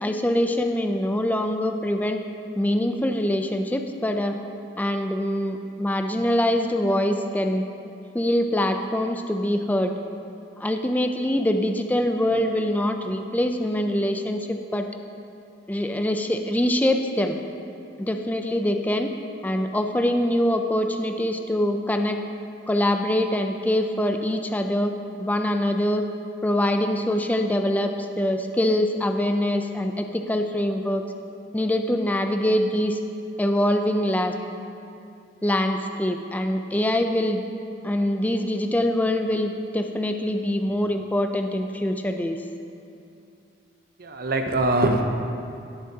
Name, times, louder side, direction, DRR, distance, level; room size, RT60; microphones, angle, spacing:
voice 1, 0.0-2.2 2.6-4.4 4.8-7.7 8.1-9.9 10.6-14.9 15.7-17.4 18.0-19.1 19.4-22.2 22.7-24.9 25.2-26.1 26.4-31.0 31.5-33.0 33.4-34.4 35.4-37.4 37.8-42.4, left 1 dB, 10° left, 5 dB, 0.4 m, -24 dB
voice 2, 44.0-45.0, right 2 dB, 55° right, 4 dB, 0.8 m, -22 dB
17.5 x 7.3 x 2.8 m, 2.6 s
head